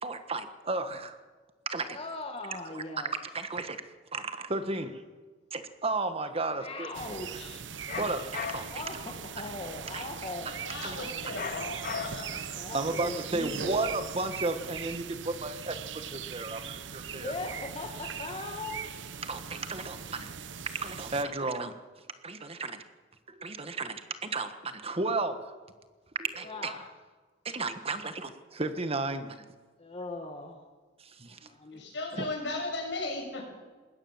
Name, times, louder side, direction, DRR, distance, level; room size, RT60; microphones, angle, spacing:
voice 1, 0.0-1.2 1.6-2.0 2.7-3.8 4.1-5.0 5.5-6.9 8.0-8.8 9.9-10.0 10.8-11.0 12.7-17.3 19.3-20.3 20.8-21.8 22.2-22.8 23.3-25.6 26.1-26.7 27.4-29.4 31.0-31.4 32.1-32.3, right 3 dB, 35° right, 9 dB, 1.4 m, -33 dB
voice 2, 1.9-3.1 6.6-7.7 8.7-10.6 12.6-13.9 17.1-18.8 26.4-26.9 29.8-30.7 31.5-31.8, left 2 dB, 30° left, 3 dB, 1.7 m, -39 dB
sound 1, 6.9-21.2, right 7 dB, 90° right, 1.0 m, -40 dB
sound 2, 7.9-8.9 11.3-12.4, left 6 dB, 50° left, 0.9 m, -37 dB
voice 3, 10.6-12.6 31.7-33.5, left 2 dB, 75° left, 2 dB, 6.8 m, -36 dB
21.0 x 17.5 x 7.3 m, 1.4 s
head